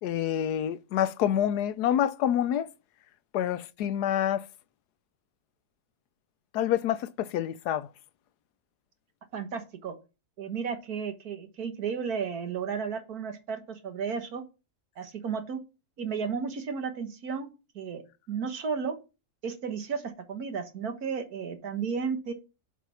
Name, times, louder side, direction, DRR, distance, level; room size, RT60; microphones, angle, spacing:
voice 1, 0.0-2.7 3.3-4.4 6.5-7.9, left 10 dB, 85° left, 1.2 m, -27 dB
voice 2, 9.3-9.9 10.4-14.4 15.0-15.6 16.0-18.0 18.3-18.9 19.4-22.3, right 6 dB, 70° right, 1.8 m, -33 dB
7.4 x 5.6 x 5.6 m
omnidirectional pair, 1.7 m